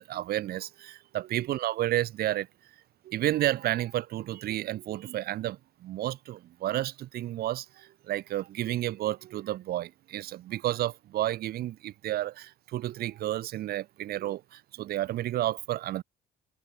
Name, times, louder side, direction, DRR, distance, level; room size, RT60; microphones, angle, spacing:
voice 1, 0.0-2.5 3.0-16.0, right 14 dB, 65° right, 1.3 m, -31 dB
cardioid pair, 110°, 17 cm